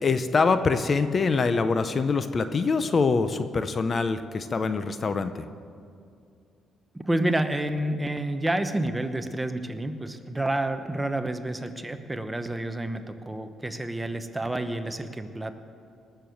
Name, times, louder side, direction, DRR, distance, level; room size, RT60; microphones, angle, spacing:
voice 1, 0.0-5.5, left 4 dB, 40° left, 10 dB, 0.7 m, -24 dB
voice 2, 6.9-15.5, right 1 dB, 10° right, 8 dB, 1.0 m, -29 dB
19.5 x 6.9 x 7.8 m, 2.4 s
cardioid pair, 90°, 0 cm